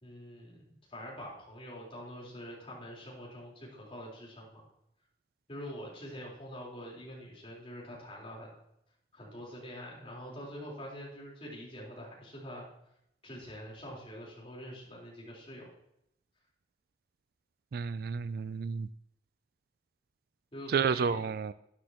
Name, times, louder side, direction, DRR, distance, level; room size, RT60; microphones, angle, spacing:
voice 1, 0.0-4.6 5.5-8.5 9.1-12.7 13.2-15.7 20.5-21.2, equal, 30° left, -4 dB, 4.0 m, -45 dB
voice 2, 17.7-18.9 20.7-21.5, right 6 dB, 55° right, 16 dB, 0.3 m, -31 dB
12.5 x 10.0 x 3.0 m, 0.76 s
head